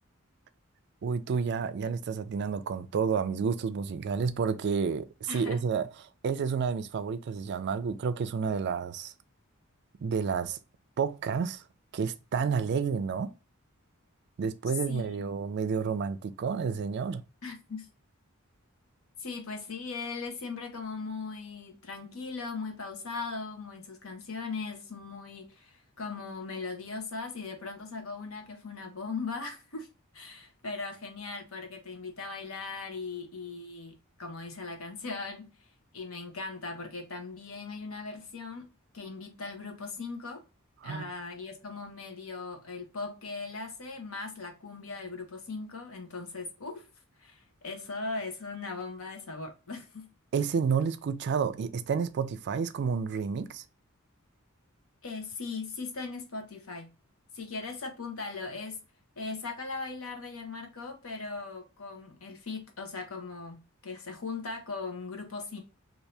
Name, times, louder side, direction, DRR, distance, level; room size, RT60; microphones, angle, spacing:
voice 1, 1.0-5.9 6.2-9.1 10.0-10.6 11.0-11.6 11.9-13.3 14.4-17.2 40.8-41.1 50.3-53.6, right 6 dB, 55° right, 0.4 m, -30 dB
voice 2, 5.3-5.6 14.9-15.2 17.4-17.9 19.2-29.9 30.1-35.5 35.9-38.7 38.9-40.4 40.8-46.9 47.2-50.1 55.0-56.9 57.3-58.8 59.2-65.6, left 4 dB, 70° left, 1.0 m, -39 dB
2.7 x 2.6 x 3.2 m
head